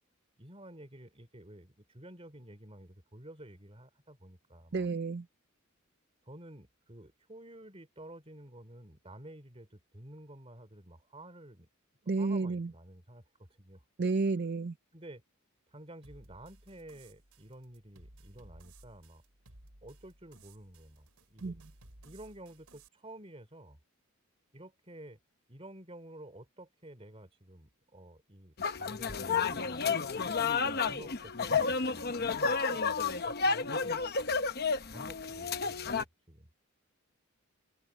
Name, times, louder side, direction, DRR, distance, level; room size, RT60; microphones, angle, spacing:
voice 1, 0.4-4.9 6.2-11.7 12.2-13.8 14.9-15.2 15.7-19.2 19.8-21.6 22.0-23.8 24.5-25.2 25.5-30.0 30.6-34.4 34.9-36.5, right 1 dB, 25° right, 3.3 m, -51 dB
voice 2, 4.7-5.2 12.1-12.7 14.0-14.7 21.4-21.5, right 3 dB, 50° right, 0.5 m, -31 dB
sound 1, 16.0-22.9, right 1 dB, 90° right, 4.9 m, -58 dB
sound 2, 28.6-36.0, left 5 dB, 45° left, 1.0 m, -31 dB
head